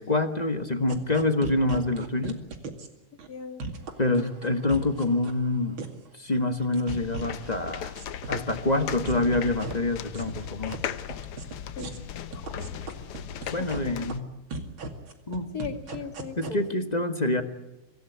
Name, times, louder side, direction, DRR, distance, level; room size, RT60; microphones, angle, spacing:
voice 1, 0.0-2.4 4.0-5.8 6.1-7.9 8.3-10.8 13.5-14.3 15.3-15.5 16.4-17.4, left 2 dB, 20° left, 7 dB, 1.4 m, -26 dB
sound 1, 0.9-2.9 3.2-3.3 3.6-5.4 5.8-6.1 6.3-7.5 7.8-8.6 8.9-9.7 10.1-10.8 11.1-11.5 11.8-12.0 12.3-13.8 14.1-14.2 14.5-16.5, right 3 dB, 65° right, 3.1 m, -36 dB
voice 2, 3.3-3.7 11.8-11.9 12.3-12.8 13.8-13.9 15.5-16.6, left 5 dB, 45° left, 5 dB, 2.8 m, -38 dB
sound 2, 6.9-14.2, left 9 dB, 80° left, 1.9 m, -37 dB
25.5 x 17.0 x 9.5 m, 0.99 s
omnidirectional pair, 2.4 m